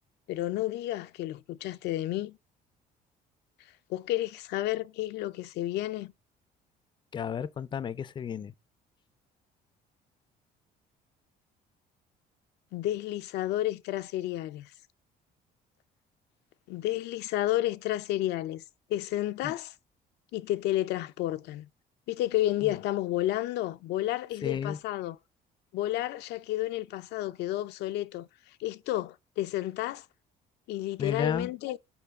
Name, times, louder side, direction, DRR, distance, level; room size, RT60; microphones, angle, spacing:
voice 1, 0.3-2.4 3.9-6.1 12.7-14.7 16.7-18.6 18.9-19.7 20.3-21.7 22.1-25.2 25.7-28.3 28.6-30.1 30.7-31.8, left 14 dB, 80° left, 0.5 m, -31 dB
voice 2, 7.1-8.5 19.4-19.5 22.6-22.7 24.4-24.8 31.0-31.5, left 7 dB, 30° left, 0.4 m, -33 dB
7.0 x 5.0 x 4.7 m
cardioid pair, 110°, 17 cm